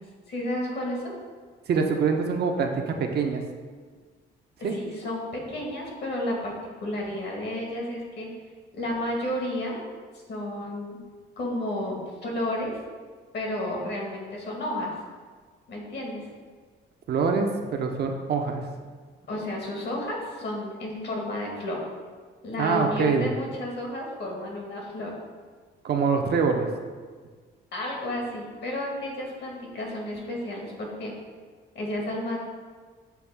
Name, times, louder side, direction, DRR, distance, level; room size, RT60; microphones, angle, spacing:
voice 1, 0.3-1.1 4.6-6.5 6.8-8.3 8.7-9.8 10.3-11.0 11.4-12.7 13.3-14.9 15.7-16.3 19.3-21.8 22.4-25.1 27.7-31.1 31.7-32.4, left 1 dB, 60° left, -1 dB, 1.3 m, -32 dB
voice 2, 1.7-3.4 4.6-4.7 17.1-18.6 22.6-23.3 25.8-26.7, right 5 dB, 55° right, 3 dB, 0.5 m, -24 dB
6.8 x 2.3 x 3.4 m, 1.5 s
cardioid pair, 90°, 20 cm